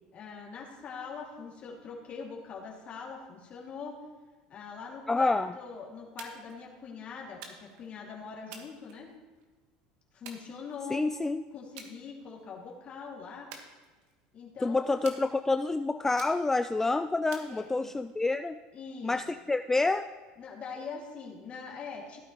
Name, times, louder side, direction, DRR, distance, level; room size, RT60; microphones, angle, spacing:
voice 1, 0.1-4.0 4.5-9.1 10.1-11.0 11.5-13.5 14.3-14.9 17.5-17.9 18.7-19.2 20.4-22.2, left 5 dB, 45° left, -2 dB, 2.4 m, -43 dB
voice 2, 5.1-5.5 10.9-11.4 14.6-18.6 19.0-20.1, left 3 dB, 10° left, 9 dB, 0.3 m, -28 dB
sound 1, 6.2-6.6 7.4-7.9 8.5-9.4 10.3-11.1 11.8-12.0 12.4-12.7 13.5-14.3 15.0-15.7 16.2-16.7 17.3-18.1, right 5 dB, 70° right, 1.5 m, -49 dB
16.0 x 9.0 x 3.1 m, 1.3 s
supercardioid pair, 95°, 3 cm